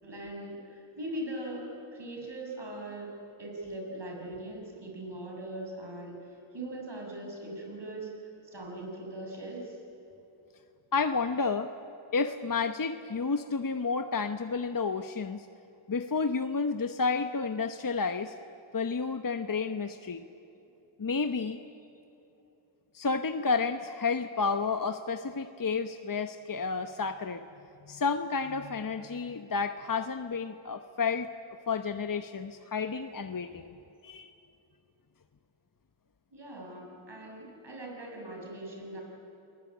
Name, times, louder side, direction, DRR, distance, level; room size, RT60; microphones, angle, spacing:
voice 1, 0.0-3.1 3.4-6.2 6.5-8.1 8.4-9.8 36.3-39.0, right 1 dB, 60° right, 0 dB, 7.2 m, -40 dB
voice 2, 10.9-11.7 12.1-15.5 15.9-18.3 18.7-20.2 21.0-21.6 22.9-27.4 27.9-31.3 31.7-33.7 34.0-34.3, left 4 dB, 40° left, 8 dB, 1.0 m, -31 dB
29.0 x 19.5 x 8.7 m, 2.9 s
cardioid pair, 50°, 48 cm